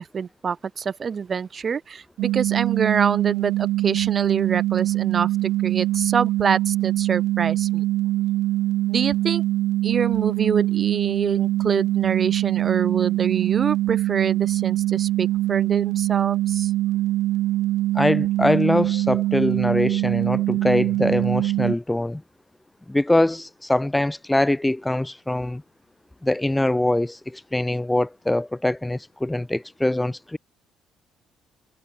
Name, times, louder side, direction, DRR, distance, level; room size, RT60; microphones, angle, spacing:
voice 1, 0.0-7.8 8.9-9.4 9.8-16.7, right 6 dB, 35° right, 2.1 m, -26 dB
sound 1, 2.2-21.8, right 16 dB, 80° right, 1.8 m, -23 dB
voice 2, 17.9-22.2 22.9-25.6 26.2-30.4, left 1 dB, 10° left, 1.2 m, -23 dB
cardioid pair, 115°, 0 cm